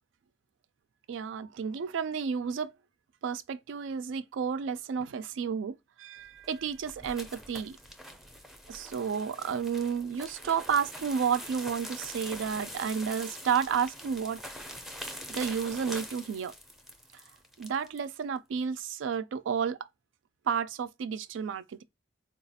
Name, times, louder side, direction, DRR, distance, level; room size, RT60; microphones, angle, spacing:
voice 1, 1.1-2.7 3.2-7.8 8.7-14.4 15.3-16.5 17.1-17.2 17.6-19.9 20.5-21.8, right 7 dB, 75° right, 0.3 m, -31 dB
sound 1, 6.3-18.0, equal, ahead, 0.5 m, -44 dB
4.0 x 2.3 x 2.7 m
head